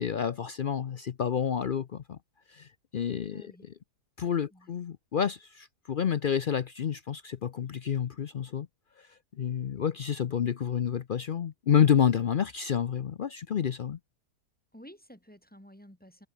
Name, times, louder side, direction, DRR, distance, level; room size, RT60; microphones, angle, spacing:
voice 1, 0.0-2.2 2.5-2.7 2.9-3.5 4.2-8.7 9.4-14.0, left 8 dB, 70° left, 0.5 m, -29 dB
voice 2, 3.3-3.7 4.5-4.7 14.7-16.3, equal, 5° left, 2.5 m, -52 dB
omnidirectional pair, 1.7 m